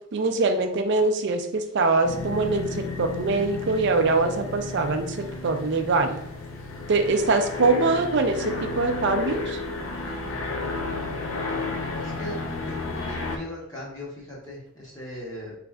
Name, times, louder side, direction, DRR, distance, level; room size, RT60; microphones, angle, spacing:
voice 1, 0.1-6.2 6.9-9.6, right 3 dB, 50° right, 6 dB, 0.4 m, -23 dB
sound 1, 2.0-13.4, left 3 dB, 65° left, 0.5 m, -32 dB
voice 2, 12.0-12.4 12.7-15.5, left 1 dB, 15° left, -6 dB, 0.8 m, -39 dB
3.7 x 3.1 x 2.3 m, 0.79 s
head